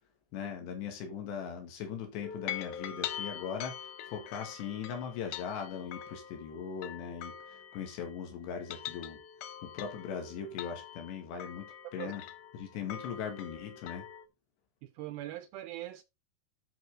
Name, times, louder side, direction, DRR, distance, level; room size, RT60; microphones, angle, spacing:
voice 1, 0.3-3.8 4.1-9.2 9.6-12.2 12.5-14.0, left 7 dB, 90° left, 4.3 m, -39 dB
sound 1, 2.2-8.2 8.5-14.3, left 10 dB, 75° left, 2.6 m, -44 dB
voice 2, 14.8-16.0, right 15 dB, 85° right, 2.1 m, -41 dB
12.0 x 5.5 x 3.7 m
omnidirectional pair, 4.8 m